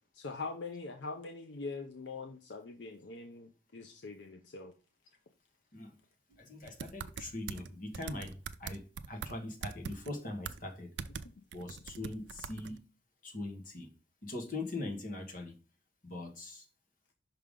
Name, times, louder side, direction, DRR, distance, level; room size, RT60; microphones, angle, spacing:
voice 1, 0.1-4.7, left 3 dB, 70° left, 0.6 m, -43 dB
voice 2, 6.3-10.9 11.5-12.8 13.2-13.9 14.2-15.5 16.0-16.7, left 2 dB, 45° left, 1.3 m, -41 dB
sound 1, 6.7-7.7 7.9-9.3 9.6-10.1 10.5-10.6 11.0-11.3 11.5-12.8, right 6 dB, 70° right, 0.4 m, -42 dB
5.8 x 5.0 x 3.7 m
head